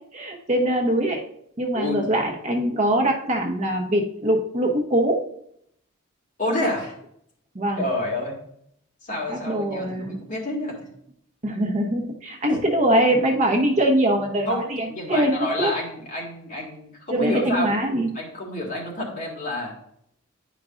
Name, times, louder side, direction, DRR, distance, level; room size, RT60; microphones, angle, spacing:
voice 1, 0.1-1.2 1.6-5.2 7.5-7.9 9.3-10.2 11.4-15.7 17.1-18.2, right 1 dB, 35° right, 1 dB, 0.8 m, -23 dB
voice 2, 6.4-6.9 7.8-8.4 9.0-10.8 14.5-14.6 14.9-17.7 18.1-19.7, left 1 dB, 35° left, -3 dB, 1.9 m, -28 dB
10.0 x 5.0 x 2.4 m, 0.71 s
head